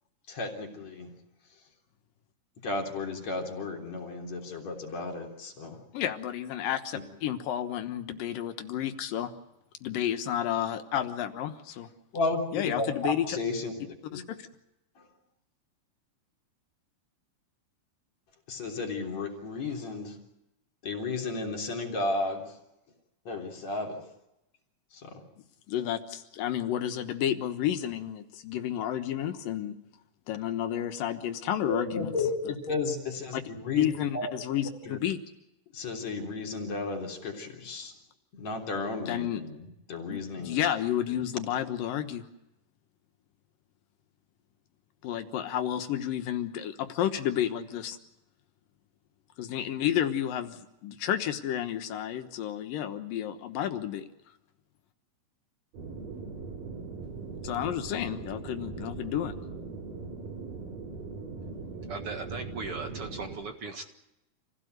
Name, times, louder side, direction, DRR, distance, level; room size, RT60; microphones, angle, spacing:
voice 1, 0.3-1.1 2.6-5.8 12.1-13.7 14.1-14.2 18.5-20.1 20.8-22.4 23.3-24.0 24.9-25.2 31.7-33.9 34.1-34.3 34.9-35.0 35.7-37.9 38.3-40.6, left 3 dB, 55° left, 2 dB, 4.7 m, -33 dB
voice 2, 5.9-9.3 9.8-11.9 12.5-13.4 14.1-14.5 25.7-29.7 30.3-32.1 33.8-35.2 39.1-39.4 40.1-42.2 45.0-48.0 49.4-54.1 57.4-59.3, left 11 dB, 85° left, 8 dB, 3.0 m, -31 dB
sound 1, 55.7-63.4, right 4 dB, 80° right, 5.1 m, -40 dB
voice 3, 61.9-63.9, right 4 dB, 50° right, 4 dB, 2.3 m, -38 dB
28.0 x 16.5 x 8.0 m, 0.91 s
omnidirectional pair, 3.8 m